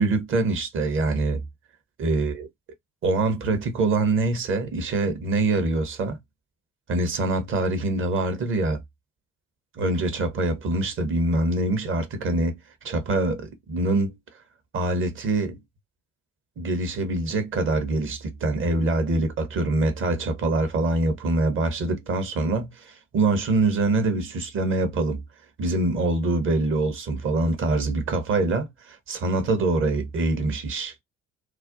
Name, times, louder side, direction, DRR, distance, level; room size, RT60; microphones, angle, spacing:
voice 1, 0.0-1.5 2.0-2.5 3.0-6.2 6.9-8.8 9.7-12.5 12.8-14.2 14.7-15.6 16.6-25.2 25.6-30.9, right 2 dB, 35° right, 0.7 m, -24 dB
2.4 x 2.1 x 2.4 m
figure-of-eight pair, 50°, 36 cm